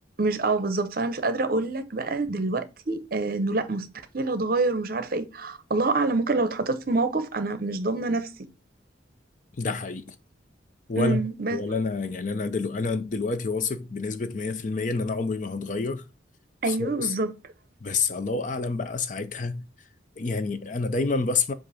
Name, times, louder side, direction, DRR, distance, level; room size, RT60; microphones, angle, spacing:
voice 1, 0.2-3.9 4.1-8.4 11.0-11.6 16.6-17.3, right 3 dB, 50° right, 0.7 m, -26 dB
voice 2, 9.6-10.2 10.9-11.2 11.5-16.0 16.7-17.1 17.8-19.7 20.2-21.5, left 4 dB, 40° left, 0.5 m, -28 dB
7.6 x 2.6 x 4.8 m
head